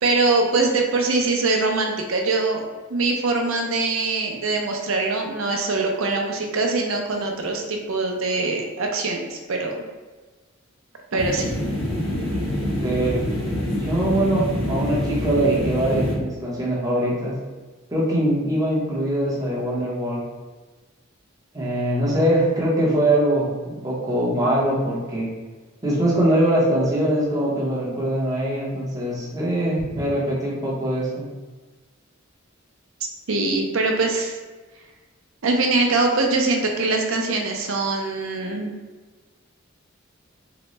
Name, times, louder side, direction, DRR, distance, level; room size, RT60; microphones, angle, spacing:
voice 1, 0.0-2.6 2.9-9.9 11.1-11.5 33.3-34.4 35.4-38.7, right 3 dB, 75° right, 1 dB, 0.6 m, -23 dB
sound 1, 11.2-16.2, equal, 65° left, 1.0 m, -26 dB
voice 2, 12.8-13.2 13.8-17.4 17.9-20.2 21.5-25.3 25.8-31.3, right 1 dB, 15° right, -6 dB, 0.8 m, -22 dB
3.8 x 2.2 x 3.1 m, 1.3 s
head